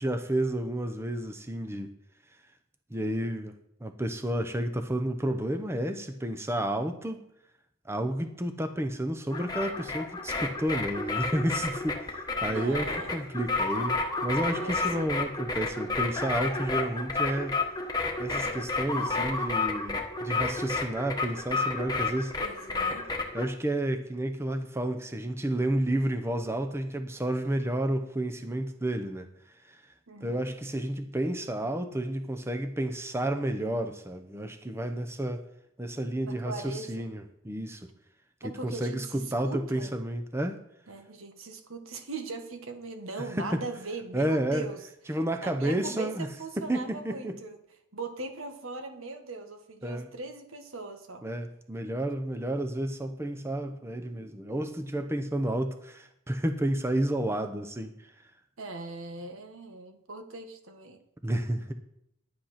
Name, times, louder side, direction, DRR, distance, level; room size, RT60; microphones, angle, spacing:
voice 1, 0.0-1.9 2.9-3.6 3.8-7.2 7.8-17.6 18.2-22.3 23.3-29.3 29.6-29.8 30.2-35.4 35.8-37.9 38.4-40.6 43.4-43.6 44.1-44.7 45.1-46.3 46.6-47.4 49.8-50.1 51.2-58.1 61.2-61.7, right 1 dB, 10° right, 6 dB, 0.8 m, -31 dB
sound 1, 9.3-23.4, left 3 dB, 20° left, 1.3 m, -31 dB
voice 2, 12.5-13.1 14.6-15.2 22.4-23.1 30.1-30.5 36.2-37.1 38.4-39.9 40.9-44.9 45.4-47.6 47.9-51.2 58.6-61.0, right 3 dB, 75° right, 6 dB, 1.5 m, -40 dB
10.5 x 10.5 x 5.8 m, 0.77 s
head